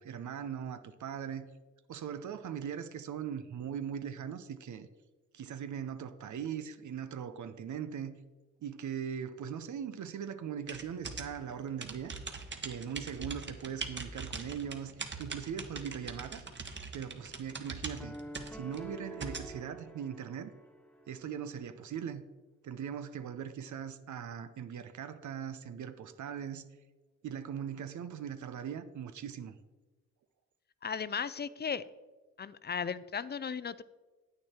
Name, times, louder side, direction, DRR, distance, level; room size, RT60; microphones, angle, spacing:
voice 1, 0.0-1.4 1.9-4.9 5.3-8.1 8.6-12.1 12.6-16.4 16.9-18.1 18.5-20.5 21.1-22.2 22.6-26.6 27.2-29.5, right 8 dB, 65° right, 10 dB, 0.8 m, -40 dB
sound 1, 10.7-19.5, right 4 dB, 35° right, 1.4 m, -42 dB
sound 2, 18.0-21.2, right 1 dB, 5° left, 0.8 m, -47 dB
voice 2, 30.8-31.8 32.4-33.8, left 6 dB, 35° left, 17 dB, 0.5 m, -36 dB
9.5 x 8.7 x 4.4 m, 1.3 s
cardioid pair, 60°, 31 cm